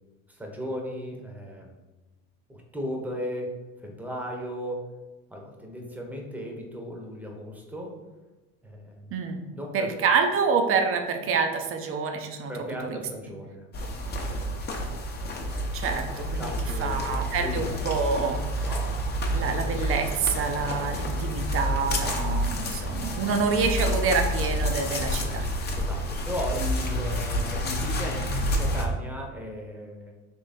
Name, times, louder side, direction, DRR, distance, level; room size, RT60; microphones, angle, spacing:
voice 1, 0.3-1.8 2.5-3.5 3.8-4.9 5.3-8.0 8.6-9.1 9.5-10.1 12.5-13.7 15.2-15.6 16.4-17.7 18.6-19.4 25.8-30.1, equal, 5° right, 0 dB, 0.9 m, -36 dB
voice 2, 9.1-9.4 9.7-12.5 15.7-18.7 19.3-25.5, right 5 dB, 40° right, 5 dB, 0.7 m, -27 dB
sound 1, 13.7-28.9, equal, 30° left, 0.8 m, -29 dB
3.6 x 2.9 x 4.1 m, 1.2 s
supercardioid pair, 95°, 35 cm